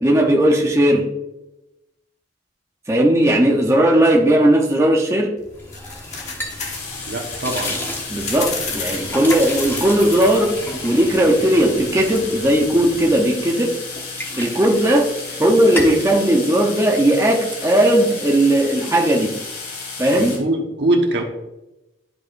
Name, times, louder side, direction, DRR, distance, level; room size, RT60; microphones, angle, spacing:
voice 1, 0.0-1.1 2.9-5.3 8.1-10.6 10.8-13.8 14.4-15.1 15.4-19.3 20.0-20.3, right 1 dB, 15° right, -1 dB, 0.8 m, -17 dB
sound 1, 5.4-13.3, left 4 dB, 40° left, 1.2 m, -34 dB
sound 2, 5.6-13.4 13.7-15.4 15.6-16.1, left 1 dB, 10° left, 1.0 m, -33 dB
sound 3, 6.7-20.4, left 4 dB, 55° left, 2.4 m, -33 dB
voice 2, 7.1-7.8 20.1-21.2, right 1 dB, 65° right, 2 dB, 1.2 m, -22 dB
12.0 x 4.8 x 2.6 m, 0.95 s
head